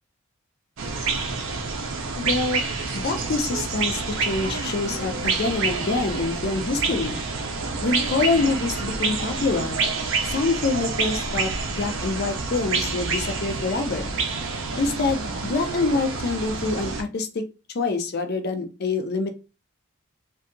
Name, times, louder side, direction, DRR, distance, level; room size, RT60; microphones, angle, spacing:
sound 1, 0.8-17.0, right 4 dB, 60° right, 0.5 m, -28 dB
voice 1, 2.2-2.6 2.9-7.2 7.8-9.8 10.2-14.1 14.8-17.4 17.7-19.3, left 3 dB, 50° left, 7 dB, 0.5 m, -26 dB
2.7 x 2.3 x 2.5 m, 0.30 s
head